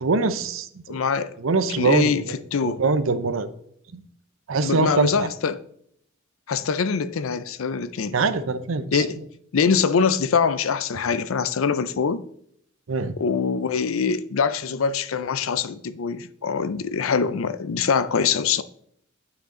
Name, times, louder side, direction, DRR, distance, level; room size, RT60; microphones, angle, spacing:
voice 1, 0.0-1.0 1.4-2.3 2.6-3.5 3.9-4.0 4.5-5.3 8.1-9.0 12.9-13.1, right 3 dB, 75° right, 0.7 m, -23 dB
voice 2, 0.9-1.4 1.8-2.2 2.5-2.8 4.6-5.6 6.5-8.1 8.9-9.2 9.5-12.2 13.2-18.6, left 6 dB, 80° left, 0.5 m, -23 dB
9.4 x 5.6 x 3.8 m
head